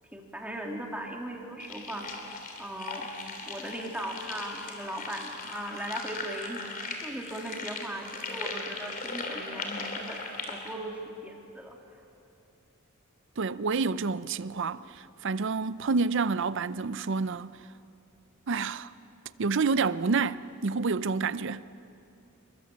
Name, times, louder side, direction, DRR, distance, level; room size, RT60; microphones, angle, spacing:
voice 1, 0.1-2.1 2.6-3.1 3.5-6.6 7.0-10.2 10.5-11.8, right 1 dB, 5° right, 2.6 m, -38 dB
sound 1, 1.6-10.7, left 3 dB, 45° left, 3.0 m, -38 dB
voice 2, 13.4-17.6 18.5-18.9 19.4-21.6, right 4 dB, 60° right, 0.6 m, -28 dB
27.5 x 22.5 x 7.4 m
head